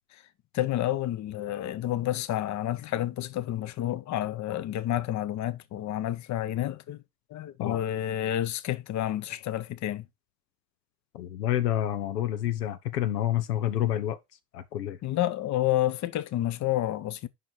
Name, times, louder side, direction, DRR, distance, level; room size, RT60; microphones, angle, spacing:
voice 1, 0.5-7.0 7.3-10.1 15.0-17.3, left 13 dB, 35° left, 0.8 m, -29 dB
voice 2, 11.1-14.2 14.5-15.0, left 12 dB, 75° left, 0.8 m, -28 dB
5.7 x 5.6 x 5.3 m
figure-of-eight pair, 65°, 48 cm